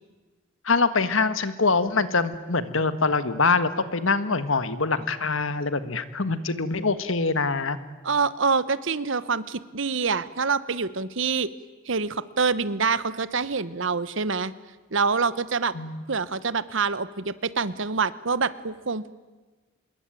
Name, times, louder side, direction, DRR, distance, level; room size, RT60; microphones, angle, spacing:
voice 1, 0.6-7.8 15.7-16.0, left 4 dB, 70° left, 12 dB, 1.5 m, -24 dB
voice 2, 8.0-11.5 11.9-14.5 14.9-15.7 16.1-19.1, right 4 dB, 65° right, 16 dB, 1.0 m, -26 dB
25.5 x 21.5 x 9.2 m, 1.3 s
head